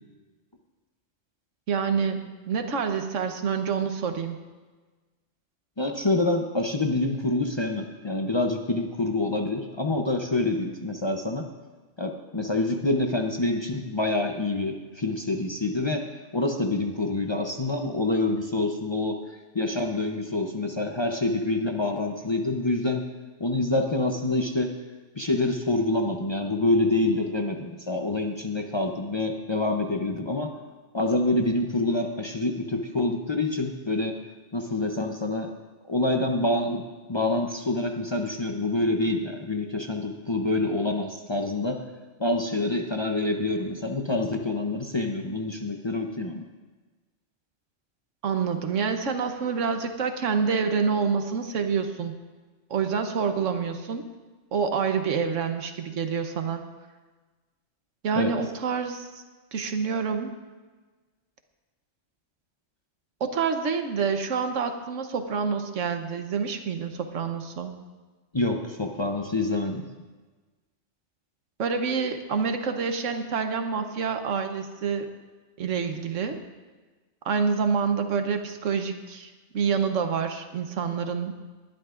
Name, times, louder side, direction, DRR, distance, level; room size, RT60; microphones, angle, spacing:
voice 1, 1.7-4.4 48.2-52.2 52.7-54.1 54.5-56.6 58.0-59.2 59.5-60.4 63.2-67.7 71.6-75.1 75.6-76.4 77.2-81.3, right 6 dB, 85° right, 7 dB, 1.3 m, -27 dB
voice 2, 5.8-11.4 12.0-16.0 16.3-19.2 19.5-23.0 23.4-24.7 25.2-30.5 30.9-34.2 34.5-35.5 35.8-41.8 42.2-46.4 58.1-58.3 68.3-69.9, left 2 dB, 30° left, 2 dB, 0.6 m, -26 dB
20.0 x 11.5 x 2.5 m, 1.3 s
omnidirectional pair, 1.2 m